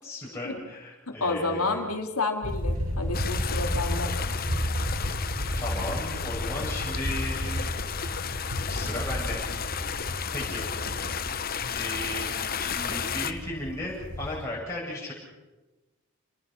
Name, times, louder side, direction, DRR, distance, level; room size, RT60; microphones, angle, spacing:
voice 1, 0.0-1.8 5.6-7.7 8.6-9.4 9.7-10.0 10.3-10.6 11.7-15.1, left 1 dB, 15° left, -5 dB, 8.0 m, -35 dB
voice 2, 1.2-4.1, left 3 dB, 90° left, 4 dB, 3.0 m, -30 dB
sound 1, 2.4-14.4, equal, 85° right, 7.3 m, -33 dB
sound 2, 3.1-13.3, left 7 dB, 40° left, 1.0 m, -33 dB
29.5 x 21.0 x 6.0 m, 1.1 s
head